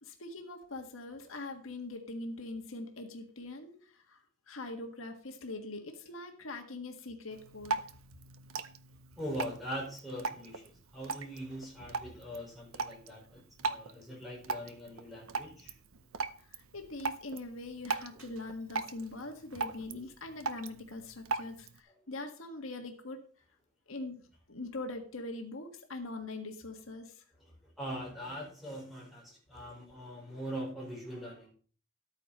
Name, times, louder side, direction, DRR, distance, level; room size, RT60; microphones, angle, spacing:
voice 1, 0.0-7.8 16.4-23.2 23.9-24.2 24.5-27.2, left 2 dB, 80° left, 4 dB, 1.6 m, -42 dB
Drip, 7.3-21.8, right 4 dB, 90° right, 0.8 m, -40 dB
voice 2, 9.2-16.1 18.1-18.3 27.4-31.5, equal, ahead, -3 dB, 5.0 m, -42 dB
12.5 x 9.0 x 4.2 m, 0.43 s
head